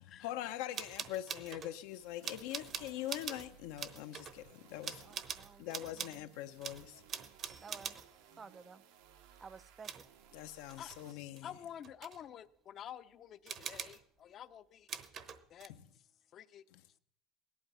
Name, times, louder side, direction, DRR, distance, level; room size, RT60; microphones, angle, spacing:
voice 1, 0.2-5.1 5.6-7.0 10.3-11.5 15.7-15.8 16.7-16.8, left 13 dB, 75° left, 0.8 m, -43 dB
sound 1, 0.7-1.7 2.2-3.5 3.8-4.4 4.8-6.2 6.6-8.1 9.8-10.1 10.7-11.0 11.4-12.2 13.5-14.0 14.9-15.7, right 7 dB, 40° right, 1.0 m, -44 dB
sound 2, 1.7-11.1, right 9 dB, 80° right, 1.6 m, -62 dB
voice 2, 4.8-6.4 7.6-8.0 8.4-8.8 9.4-10.1, right 5 dB, 25° right, 0.5 m, -54 dB
voice 3, 10.8-14.9 15.5-15.7 16.3-16.6, left 10 dB, 45° left, 0.7 m, -50 dB
17.0 x 11.5 x 5.6 m
supercardioid pair, 115°, 0 cm